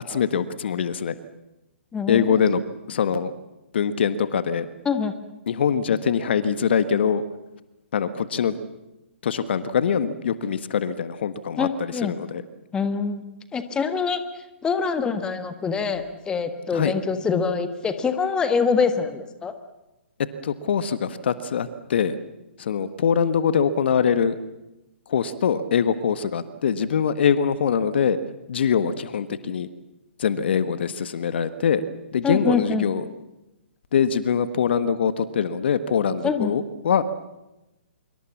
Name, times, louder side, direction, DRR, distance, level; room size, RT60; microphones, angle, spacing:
voice 1, 0.1-1.1 2.1-2.6 2.9-3.3 3.7-4.7 5.5-7.2 7.9-8.6 9.2-12.4 16.7-16.9 20.4-22.2 22.6-24.4 25.1-28.2 28.5-29.7 30.2-31.8 32.1-33.1 33.9-37.0, left 7 dB, 55° left, 12 dB, 1.5 m, -23 dB
voice 2, 1.9-2.4 4.8-5.1 11.6-12.1 12.7-13.2 13.5-14.2 14.6-19.5 32.2-32.8 36.2-36.5, left 5 dB, 10° left, 9 dB, 1.6 m, -24 dB
25.5 x 24.0 x 7.3 m, 0.97 s
figure-of-eight pair, 130°, 7 cm